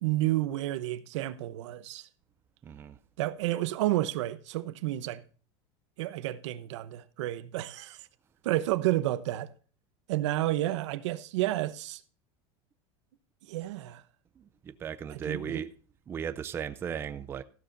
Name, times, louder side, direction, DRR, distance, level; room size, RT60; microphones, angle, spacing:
voice 1, 0.0-2.1 3.2-5.2 6.0-8.1 8.4-9.5 10.1-12.0 13.5-14.0 15.1-15.6, right 15 dB, 80° right, 0.9 m, -30 dB
voice 2, 2.6-3.0 14.4-15.7 16.1-17.4, right 7 dB, 15° right, 0.5 m, -36 dB
14.5 x 12.5 x 2.6 m
supercardioid pair, 165°, 15 cm